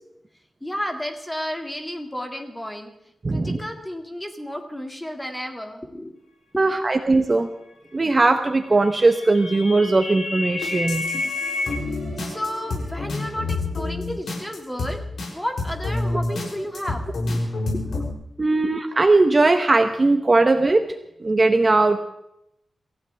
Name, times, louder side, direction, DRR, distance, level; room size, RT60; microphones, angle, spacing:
voice 1, 0.6-2.9 3.3-6.2 6.6-6.8 12.2-15.0 15.3-17.5 17.7-18.0 18.5-18.6, equal, 10° left, 4 dB, 2.3 m, -32 dB
voice 2, 3.2-3.6 6.6-7.5 7.9-11.0 18.4-20.8 21.2-22.0, right 3 dB, 30° right, 6 dB, 1.0 m, -19 dB
sound 1, 8.6-11.8, left 3 dB, 65° left, 3.5 m, -30 dB
sound 2, 10.6-15.3 15.6-18.1, left 2 dB, 85° left, 6.8 m, -28 dB
27.0 x 15.5 x 3.5 m, 0.78 s
wide cardioid pair, 130°, 0 cm